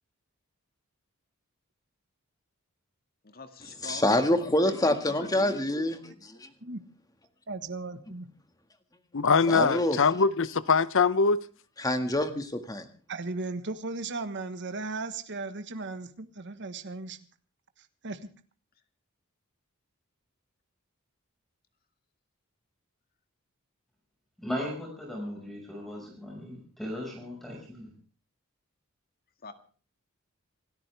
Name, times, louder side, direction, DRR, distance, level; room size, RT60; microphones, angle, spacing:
voice 1, 3.2-4.3 4.6-5.7 29.4-29.5, left 3 dB, 45° left, 2.0 m, -43 dB
voice 2, 3.8-6.5 9.5-10.0 11.8-12.9, left 1 dB, 15° left, 1.8 m, -26 dB
voice 3, 7.5-8.3 13.1-17.2 17.8-18.3, right 3 dB, 55° right, 1.4 m, -36 dB
voice 4, 9.1-11.4, left 5 dB, 65° left, 0.8 m, -23 dB
voice 5, 24.4-27.9, left 1 dB, ahead, 5.5 m, -37 dB
28.0 x 13.5 x 3.4 m
head